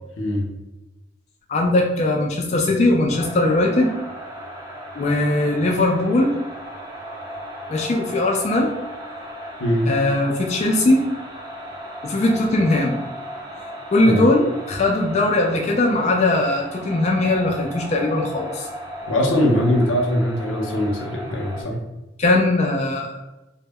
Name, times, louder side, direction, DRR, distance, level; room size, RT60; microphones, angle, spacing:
voice 1, 0.2-0.5 9.6-9.9 14.0-14.3 19.1-21.8, left 1 dB, 90° left, 0 dB, 0.6 m, -21 dB
voice 2, 1.5-3.9 4.9-6.3 7.7-8.7 9.9-11.1 12.0-13.0 13.9-18.7 22.2-23.2, left 2 dB, 35° left, 0 dB, 0.3 m, -19 dB
sound 1, 3.1-21.6, equal, 20° right, 0.5 m, -36 dB
2.1 x 2.0 x 3.4 m, 1.0 s
head